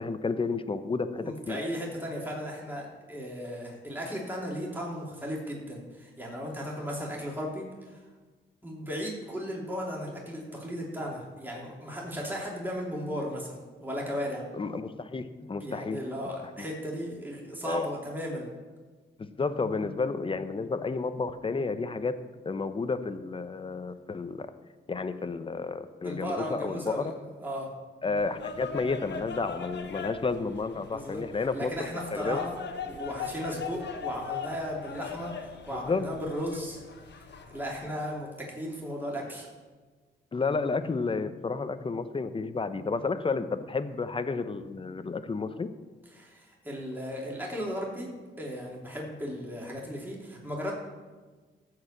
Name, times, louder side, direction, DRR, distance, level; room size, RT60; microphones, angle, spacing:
voice 1, 0.0-1.6 14.5-16.0 16.6-16.7 17.6-17.9 19.2-22.2 22.4-24.5 24.9-27.1 28.0-32.5 35.7-36.1 40.3-45.7, left 4 dB, 25° left, 11 dB, 0.8 m, -31 dB
voice 2, 1.2-8.0 8.6-14.5 15.6-18.5 26.0-27.1 27.4-27.7 30.9-31.2 31.5-36.8 37.1-39.5 46.1-48.1 48.4-50.7, equal, 10° right, -3 dB, 2.9 m, -36 dB
sound 1, 28.2-37.9, left 6 dB, 60° left, 1.2 m, -40 dB
14.5 x 4.8 x 7.2 m, 1.4 s
cardioid pair, 85°, 20 cm